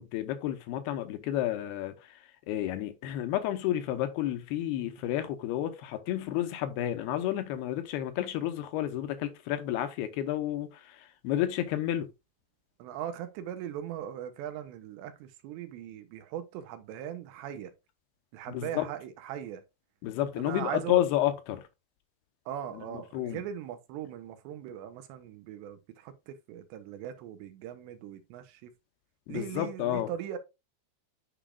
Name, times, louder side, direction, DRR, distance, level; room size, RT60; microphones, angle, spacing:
voice 1, 0.0-2.0 2.5-11.0 11.2-12.1 18.5-18.8 20.0-21.6 23.1-23.4 29.3-30.1, left 12 dB, 80° left, 2.4 m, -31 dB
voice 2, 12.8-17.7 18.3-19.6 20.4-21.0 22.5-28.7 29.3-30.4, right 10 dB, 85° right, 3.0 m, -39 dB
10.0 x 4.9 x 2.3 m
omnidirectional pair, 5.2 m